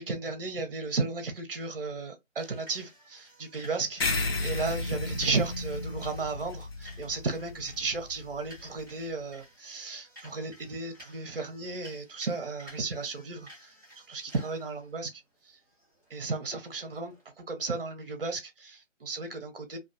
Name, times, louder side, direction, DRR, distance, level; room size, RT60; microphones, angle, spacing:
voice 1, 0.0-13.7 14.1-15.6 16.1-19.8, right 3 dB, 45° right, 0.7 m, -34 dB
sound 1, 2.4-17.2, equal, 15° left, 0.7 m, -55 dB
sound 2, 4.0-8.8, left 3 dB, 50° left, 0.5 m, -34 dB
2.4 x 2.3 x 2.4 m
figure-of-eight pair, 165°, 39 cm